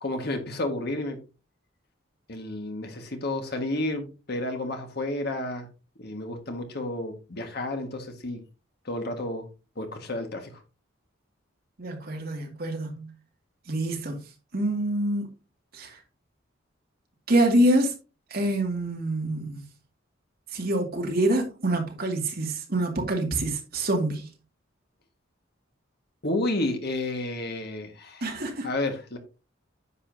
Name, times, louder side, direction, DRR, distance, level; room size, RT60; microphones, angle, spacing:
voice 1, 0.0-1.2 2.3-5.7 6.0-8.4 8.8-9.5 9.8-10.5 26.2-28.2 28.6-29.2, left 2 dB, 55° left, 1.7 m, -31 dB
voice 2, 11.8-13.1 13.7-14.2 14.5-15.3 15.7-16.0 17.3-17.9 18.3-19.6 20.5-24.3 28.2-28.7, right 1 dB, 50° right, 2.2 m, -26 dB
9.8 x 7.0 x 2.7 m
head